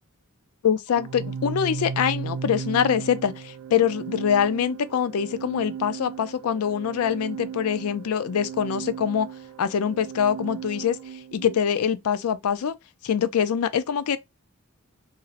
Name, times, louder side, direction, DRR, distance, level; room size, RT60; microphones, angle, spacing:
voice 1, 0.6-9.3 9.6-11.0 11.3-12.8 13.0-14.2, left 8 dB, 75° left, 0.4 m, -24 dB
Organ, 0.9-11.7, right 6 dB, 75° right, 0.3 m, -36 dB
2.6 x 2.0 x 4.0 m
head